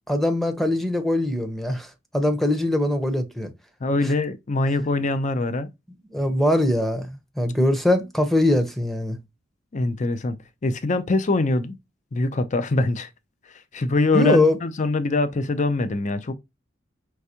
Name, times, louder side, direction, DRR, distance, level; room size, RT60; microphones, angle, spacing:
voice 1, 0.1-3.5 6.1-9.2 14.1-14.6, left 1 dB, ahead, 0.7 m, -22 dB
voice 2, 3.8-5.7 9.7-10.3 10.6-11.8 12.1-13.1 13.7-16.3, left 2 dB, 40° left, 0.5 m, -23 dB
4.7 x 3.4 x 2.8 m
head